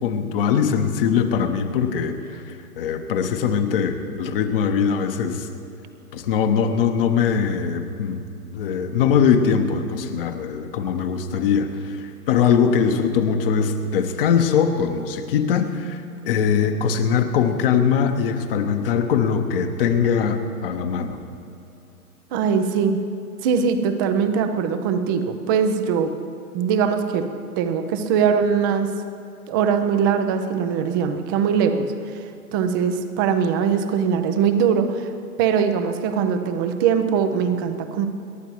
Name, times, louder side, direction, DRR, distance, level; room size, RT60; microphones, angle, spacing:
voice 1, 0.0-5.5 6.1-8.2 8.5-21.2, left 7 dB, 40° left, 6 dB, 1.1 m, -21 dB
voice 2, 22.3-23.0 23.4-26.1 26.5-27.3 27.6-28.9 29.5-32.2 32.5-35.1 35.4-38.1, right 6 dB, 15° right, 8 dB, 0.5 m, -21 dB
27.5 x 12.5 x 3.1 m, 2.6 s
figure-of-eight pair, 115°, 45 cm